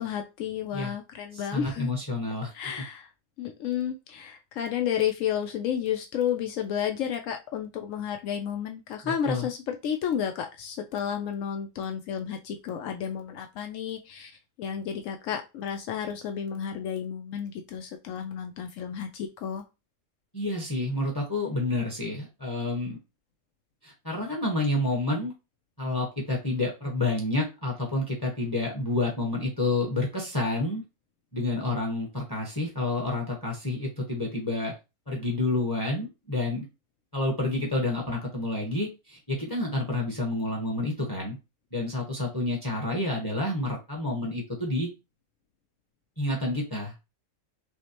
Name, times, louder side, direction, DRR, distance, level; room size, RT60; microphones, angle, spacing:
voice 1, 0.0-1.9 2.5-3.1 3.4-14.3 14.6-19.6, left 8 dB, 80° left, 5 dB, 1.0 m, -31 dB
voice 2, 1.3-2.5 9.0-9.5 20.3-23.0 23.8-25.3 25.8-30.8 31.3-34.7 35.1-36.7 37.1-41.4 41.7-44.9 46.2-46.9, left 2 dB, 15° left, 0 dB, 1.0 m, -29 dB
5.9 x 2.1 x 2.9 m, 0.26 s
omnidirectional pair, 1.3 m